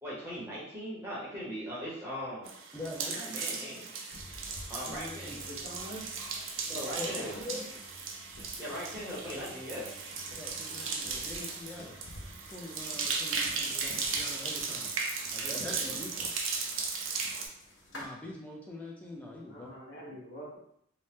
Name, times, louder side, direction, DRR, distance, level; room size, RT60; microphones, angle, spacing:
voice 1, 0.0-2.5 3.1-3.9 4.7-5.5 6.2-7.4 8.6-9.9 15.4-16.1, equal, 15° right, -8 dB, 0.8 m, -40 dB
sound 1, 2.5-17.5, right 4 dB, 70° right, 0.4 m, -36 dB
voice 2, 2.7-3.2 4.9-5.4 7.0-7.6 10.4-12.0 12.5-14.9 15.3-16.1 17.9-19.7, left 1 dB, 5° left, -2 dB, 0.4 m, -43 dB
sound 2, 4.1-18.1, left 1 dB, 65° left, 0.6 m, -51 dB
voice 3, 5.4-6.1 6.7-7.6 19.4-20.6, equal, 50° left, -6 dB, 1.1 m, -46 dB
2.7 x 2.1 x 3.3 m, 0.72 s
head